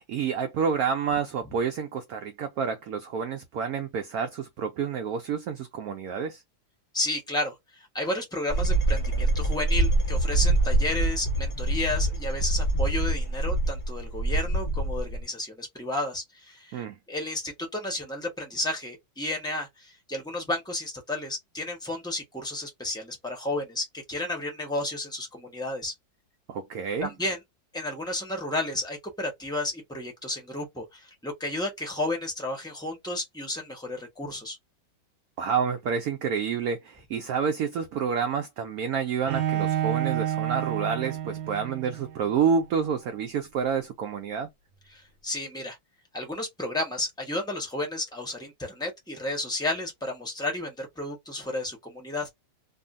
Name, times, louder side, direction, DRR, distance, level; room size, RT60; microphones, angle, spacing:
voice 1, 0.0-6.4 16.7-17.0 26.5-27.1 35.4-44.5, right 6 dB, 70° right, 0.8 m, -29 dB
voice 2, 6.9-25.9 27.0-27.4 27.7-34.6 44.9-45.8 46.1-52.3, left 2 dB, 5° left, 0.5 m, -32 dB
sound 1, 8.5-15.2, right 2 dB, 35° left, 0.9 m, -25 dB
Bowed string instrument, 39.3-42.2, right 11 dB, 90° right, 1.4 m, -29 dB
2.6 x 2.6 x 2.4 m
omnidirectional pair, 2.0 m